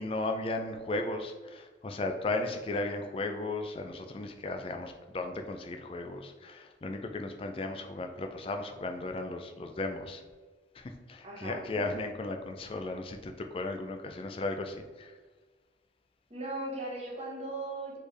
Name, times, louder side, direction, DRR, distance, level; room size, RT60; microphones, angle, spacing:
voice 1, 0.0-10.2 10.8-15.1, left 2 dB, 30° left, 5 dB, 0.4 m, -35 dB
voice 2, 11.2-11.9 16.3-18.0, right 2 dB, 35° right, -4 dB, 1.3 m, -38 dB
4.4 x 3.2 x 3.3 m, 1.3 s
head